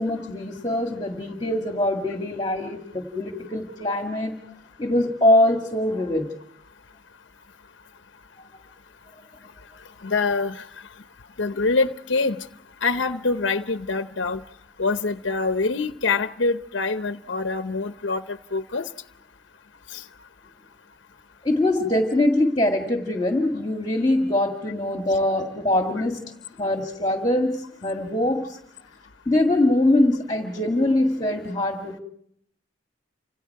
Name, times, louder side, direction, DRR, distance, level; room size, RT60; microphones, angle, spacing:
voice 1, 0.0-4.3 4.8-6.3 21.4-26.3 26.6-28.6 29.3-32.0, left 1 dB, 20° left, 1.9 m, -23 dB
voice 2, 10.0-10.6 11.4-12.4 12.8-14.4 14.8-18.9 19.9-20.0, left 3 dB, 80° left, 0.8 m, -25 dB
30.0 x 26.5 x 4.7 m
head